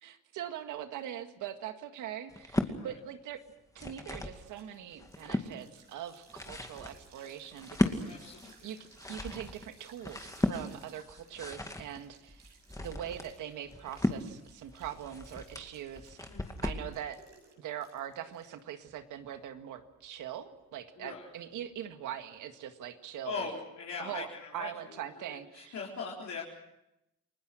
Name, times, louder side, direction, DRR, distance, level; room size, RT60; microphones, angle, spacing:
voice 1, 0.0-3.4 3.8-8.4 8.6-8.8 9.1-16.3 16.6-17.2 17.6-23.5 24.0-24.3 24.5-25.8, right 10 dB, 85° right, 8 dB, 1.9 m, -42 dB
sound 1, 2.3-2.8 3.5-4.4 4.9-5.5 6.1-16.9, left 1 dB, 10° left, 2.4 m, -36 dB
sound 2, 3.3-22.4, right 5 dB, 65° right, 7.1 m, -61 dB
voice 2, 7.9-8.5 16.3-16.6 21.0-21.3 23.2-26.4, left 5 dB, 65° left, -4 dB, 4.5 m, -41 dB
29.5 x 19.5 x 6.2 m, 0.86 s
cardioid pair, 90°, 30 cm